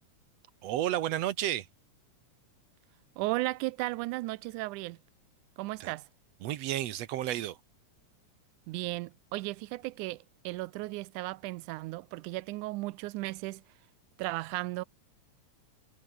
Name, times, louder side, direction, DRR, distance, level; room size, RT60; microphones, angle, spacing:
voice 1, 0.6-1.7 5.8-5.9 6.4-7.6, right 13 dB, 70° right, 1.8 m, -31 dB
voice 2, 3.2-5.0 5.6-6.1 8.7-13.6 14.2-14.8, right 20 dB, 90° right, 2.1 m, -35 dB
omnidirectional pair, 3.5 m